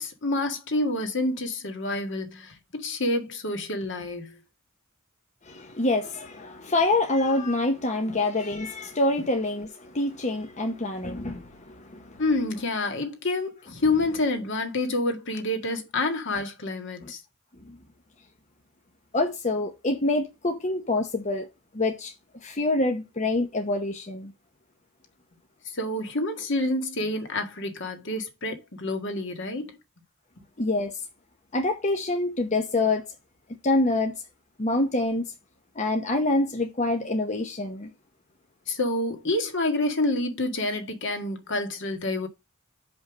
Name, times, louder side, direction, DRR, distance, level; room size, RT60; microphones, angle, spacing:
voice 1, 0.0-4.4 12.2-17.2 25.7-29.8 38.7-42.3, left 2 dB, 65° left, 1.8 m, -28 dB
voice 2, 5.4-12.2 17.0-17.1 17.6-17.8 19.1-21.5 21.7-22.1 22.4-24.3 30.6-31.0 31.5-33.1 33.6-34.2 34.6-35.2 35.8-37.9, left 2 dB, 35° left, 1.0 m, -26 dB
5.5 x 5.4 x 6.2 m
head